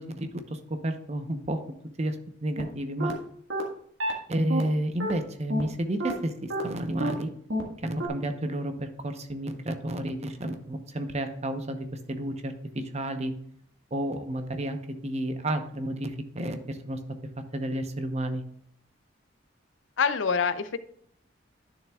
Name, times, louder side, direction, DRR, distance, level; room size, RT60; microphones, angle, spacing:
voice 1, 0.0-1.6 2.0-2.2 2.4-3.2 4.3-7.3 7.8-13.3 13.9-14.8 15.0-17.0 17.5-18.4, right 1 dB, 35° right, 7 dB, 0.8 m, -31 dB
sound 1, 2.6-2.7 3.0-3.1 3.5-3.6 4.0-4.1 4.5-4.6 5.0-5.1 5.5-5.6 6.0-6.1 6.5-6.6 7.0-7.1 7.5-7.6 8.0-8.1, right 1 dB, 80° right, 1.7 m, -28 dB
voice 2, 20.0-20.8, left 6 dB, 85° left, 13 dB, 0.6 m, -25 dB
11.0 x 6.8 x 2.3 m, 0.66 s
head